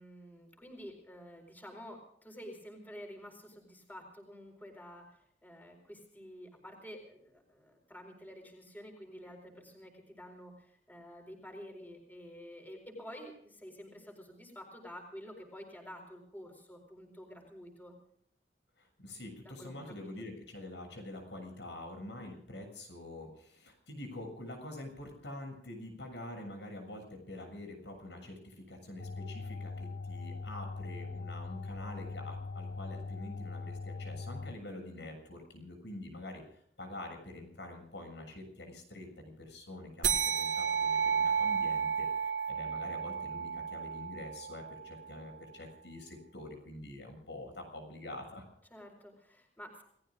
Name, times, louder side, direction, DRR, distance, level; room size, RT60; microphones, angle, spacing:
voice 1, 0.0-18.0 19.4-19.9 48.7-49.8, equal, 10° left, 2 dB, 4.4 m, -50 dB
voice 2, 18.8-36.4 36.8-48.4, left 1 dB, 85° left, 4 dB, 7.1 m, -46 dB
sound 1, 29.0-34.5, left 3 dB, 65° left, 0.8 m, -41 dB
sound 2, 40.0-45.0, right 7 dB, 85° right, 2.3 m, -32 dB
29.5 x 19.0 x 2.5 m, 0.69 s
head